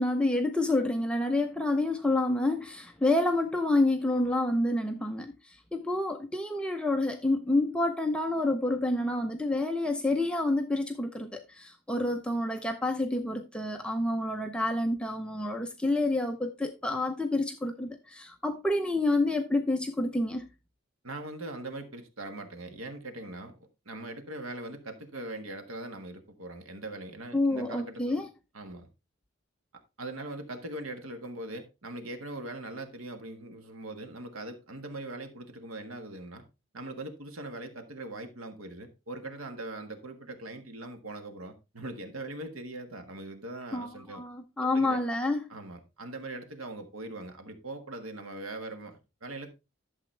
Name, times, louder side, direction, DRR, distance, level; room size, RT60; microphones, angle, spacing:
voice 1, 0.0-20.5 27.3-28.3 43.7-45.4, left 2 dB, 5° left, 0.6 m, -28 dB
voice 2, 21.0-23.5 23.8-28.2 28.5-28.9 30.0-36.4 36.7-44.2 44.7-45.0 45.5-49.5, right 2 dB, 90° right, 1.6 m, -41 dB
11.5 x 7.1 x 3.3 m
head